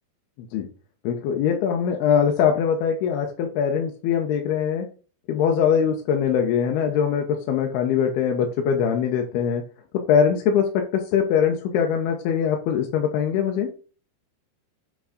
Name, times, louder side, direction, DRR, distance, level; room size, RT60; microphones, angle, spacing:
voice 1, 1.0-4.9 5.3-9.6 10.1-13.7, left 7 dB, 85° left, 2 dB, 2.9 m, -22 dB
9.2 x 3.7 x 4.1 m, 0.36 s
omnidirectional pair, 4.5 m